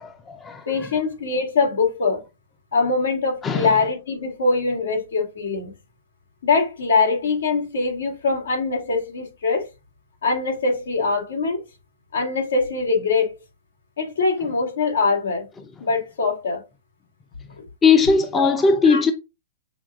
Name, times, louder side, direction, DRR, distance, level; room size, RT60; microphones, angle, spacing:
voice 1, 0.0-0.9 3.4-3.7 17.8-19.1, left 5 dB, 15° left, 0.5 m, -19 dB
voice 2, 0.7-2.2 2.7-5.7 6.4-9.7 10.2-11.6 12.1-13.3 14.0-15.5 15.8-16.6 17.6-17.7 18.3-18.5 18.9-19.0, left 4 dB, 90° left, 2.0 m, -22 dB
6.1 x 2.3 x 3.5 m
hypercardioid pair, 160°, 0 cm